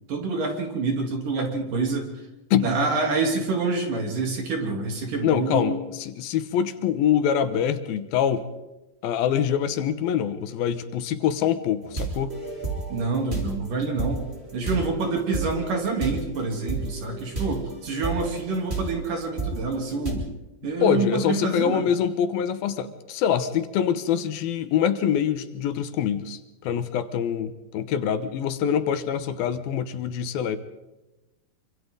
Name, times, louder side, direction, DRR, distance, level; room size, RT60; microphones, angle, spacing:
voice 1, 0.1-2.1 2.6-5.8 12.9-14.2 14.5-20.3 20.6-21.9, right 3 dB, 60° right, 1 dB, 4.8 m, -27 dB
voice 2, 2.5-2.9 5.2-8.5 9.0-12.4 20.8-30.6, left 8 dB, 80° left, 11 dB, 2.9 m, -25 dB
sound 1, 11.8-20.1, right 4 dB, 15° right, 3.6 m, -32 dB
26.5 x 25.5 x 3.9 m, 1.0 s
omnidirectional pair, 4.3 m